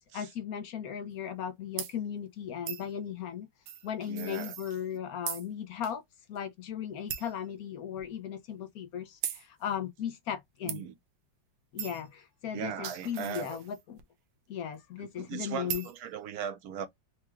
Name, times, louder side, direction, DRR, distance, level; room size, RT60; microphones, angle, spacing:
voice 1, 0.1-3.5 3.8-6.0 6.3-10.8 11.7-14.0 14.5-15.8, left 9 dB, 60° left, 1.0 m, -37 dB
sound 1, 1.8-1.9 2.7-2.9 3.7-5.0 5.3-5.5 5.8-5.9 6.4-6.5 7.1-7.4 8.0-8.1 9.2-9.4 10.7-10.8 11.8-12.1 12.6-14.0 15.7-16.0, right 10 dB, 85° right, 1.4 m, -38 dB
voice 2, 4.1-4.5 10.6-10.9 12.5-13.6 15.0-16.9, right 8 dB, 60° right, 1.1 m, -38 dB
4.6 x 2.3 x 3.0 m
omnidirectional pair, 2.1 m